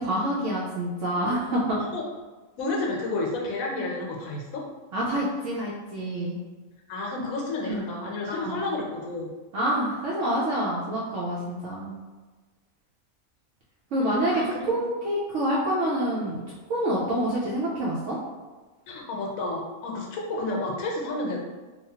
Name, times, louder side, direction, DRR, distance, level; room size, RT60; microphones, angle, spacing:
voice 1, 0.0-1.8 4.9-6.4 7.7-7.9 8.3-8.6 9.5-11.9 13.9-14.4 14.7-16.4 16.7-18.2, right 1 dB, 70° right, -6 dB, 0.8 m, -27 dB
voice 2, 2.6-4.6 6.9-9.3 14.0-14.8 18.9-21.4, left 2 dB, 80° left, -1 dB, 1.1 m, -31 dB
2.9 x 2.3 x 2.7 m, 1.3 s
omnidirectional pair, 1.5 m